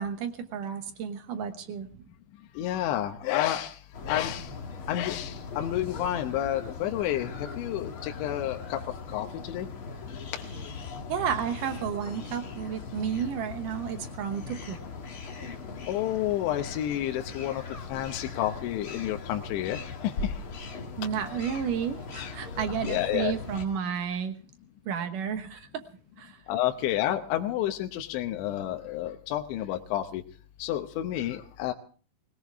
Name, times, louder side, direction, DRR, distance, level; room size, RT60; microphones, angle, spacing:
voice 1, 0.0-1.9 11.1-14.8 21.0-24.4 24.9-25.7 26.2-26.4, right 8 dB, 70° right, 8 dB, 2.0 m, -32 dB
voice 2, 2.6-3.7 4.1-4.5 4.9-8.8 9.1-9.7 10.3-10.4 15.9-17.6 17.9-19.8 22.2-22.3 22.8-23.3 26.5-30.2 30.6-31.7, left 12 dB, 80° left, 5 dB, 3.2 m, -30 dB
sound 1, 3.9-23.6, left 4 dB, 55° left, 1.5 m, -39 dB
20.5 x 18.0 x 3.6 m, 0.40 s
omnidirectional pair, 5.2 m